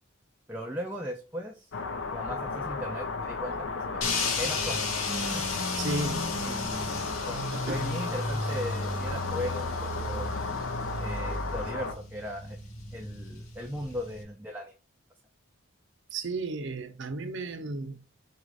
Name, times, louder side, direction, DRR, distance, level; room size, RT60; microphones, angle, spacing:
voice 1, 0.5-1.7 2.1-4.9 5.3-5.5 6.4-10.3 11.0-12.6 12.9-14.8, equal, 10° right, 0.4 m, -38 dB
sound 1, 1.7-11.9, left 4 dB, 60° left, 0.6 m, -34 dB
sound 2, 4.0-14.2, left 2 dB, 75° left, 1.1 m, -34 dB
voice 2, 5.8-6.3 7.5-7.9 16.1-18.0, right 3 dB, 55° right, 0.6 m, -34 dB
4.2 x 2.6 x 4.7 m
head